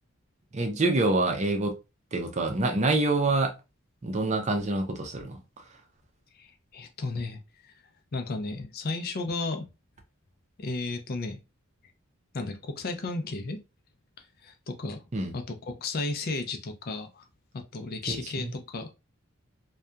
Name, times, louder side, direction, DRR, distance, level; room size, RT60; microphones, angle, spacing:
voice 1, 0.5-1.7 2.1-3.6 4.0-5.4 15.1-15.3 18.1-18.5, right 2 dB, 35° right, 0.6 m, -26 dB
voice 2, 6.4-7.4 8.1-9.6 10.6-11.4 12.3-13.6 14.4-15.0 15.3-17.2 17.5-18.9, left 3 dB, 45° left, 0.5 m, -33 dB
2.7 x 2.2 x 2.2 m
head